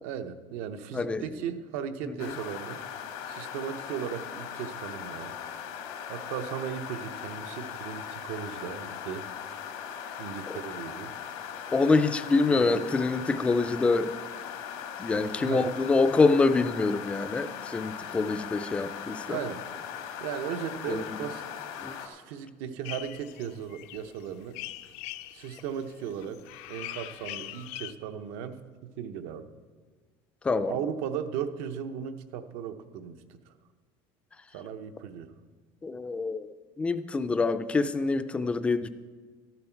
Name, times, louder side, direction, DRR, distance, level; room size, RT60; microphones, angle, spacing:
voice 1, 0.0-2.8 3.3-5.3 6.1-9.3 10.2-11.1 12.5-12.9 15.4-15.7 19.3-19.6 20.2-21.6 22.0-24.6 25.3-26.4 26.7-29.5 30.7-33.5 34.5-35.3, right 8 dB, 75° right, 9 dB, 0.8 m, -37 dB
sound 1, 2.2-22.1, left 8 dB, 85° left, 1.5 m, -39 dB
voice 2, 11.7-14.1 15.0-19.4 20.9-21.0 21.8-22.0 30.4-30.7 35.8-38.9, left 3 dB, 10° left, 11 dB, 0.3 m, -26 dB
sound 2, 22.8-27.9, left 15 dB, 70° left, 0.5 m, -42 dB
13.0 x 11.0 x 4.5 m, 1.5 s
cardioid pair, 175°, 11 cm